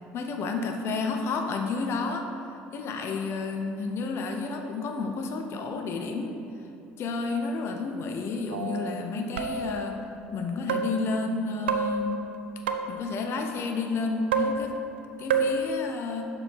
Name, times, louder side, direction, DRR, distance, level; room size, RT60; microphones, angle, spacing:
voice 1, 0.1-6.4 7.0-10.0 10.3-12.2 12.9-14.8 15.2-16.3, left 3 dB, 50° left, 4 dB, 0.6 m, -31 dB
sound 1, 8.5-8.9 9.4-9.9 10.7-11.1 11.7-13.1 14.3-15.0 15.3-15.7, right 4 dB, 80° right, 0.3 m, -28 dB
6.4 x 4.8 x 4.5 m, 2.9 s
hypercardioid pair, 60°, 6 cm